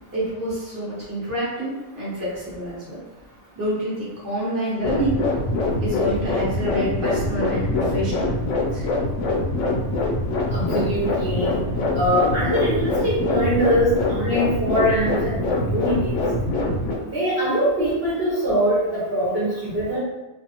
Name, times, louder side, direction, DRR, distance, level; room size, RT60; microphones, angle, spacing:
voice 1, 0.1-3.0 3.6-5.3 5.8-8.8, equal, 15° right, -8 dB, 0.8 m, -28 dB
sound 1, 4.8-17.0, left 2 dB, 70° left, 0.9 m, -24 dB
voice 2, 10.5-11.6 11.9-16.2 17.1-20.0, equal, 50° right, -8 dB, 1.0 m, -22 dB
2.6 x 2.3 x 2.8 m, 1.0 s
omnidirectional pair, 1.4 m